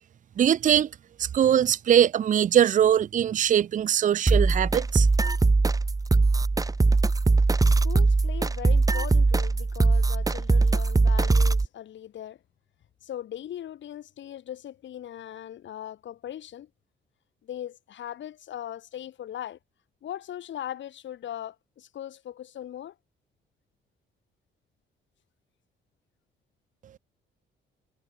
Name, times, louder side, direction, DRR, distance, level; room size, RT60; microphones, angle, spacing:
voice 1, 0.4-0.9 1.2-5.1, right 10 dB, 40° right, 0.5 m, -21 dB
sound 1, 4.3-11.7, right 3 dB, 15° right, 1.0 m, -21 dB
voice 2, 6.6-7.0 7.6-12.4 13.0-16.7 17.4-19.6 20.0-22.9, left 11 dB, 70° left, 3.4 m, -39 dB
cardioid pair, 90°, 20 cm